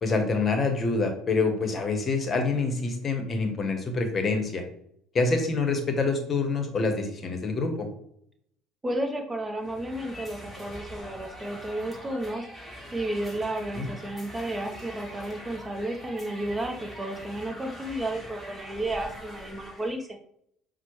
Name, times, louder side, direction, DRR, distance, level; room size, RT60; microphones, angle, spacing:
voice 1, 0.0-4.6 5.1-7.9 13.8-13.9, left 3 dB, 35° left, 5 dB, 0.9 m, -26 dB
voice 2, 8.8-12.4 12.9-20.2, right 1 dB, 20° right, 3 dB, 0.7 m, -32 dB
sound 1, 9.6-20.0, equal, ahead, 1.5 m, -43 dB
5.9 x 2.1 x 3.0 m, 0.70 s
hypercardioid pair, 70°, 0 cm